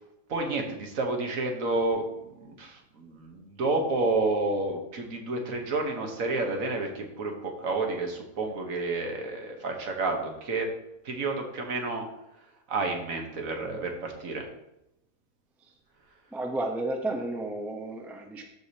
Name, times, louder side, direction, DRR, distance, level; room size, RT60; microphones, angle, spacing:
voice 1, 0.3-10.7 11.0-12.1 12.7-14.4, right 3 dB, 70° right, 3 dB, 1.5 m, -30 dB
voice 2, 16.3-18.4, right 2 dB, ahead, 3 dB, 0.5 m, -32 dB
13.5 x 4.8 x 2.8 m, 0.87 s
omnidirectional pair, 1.5 m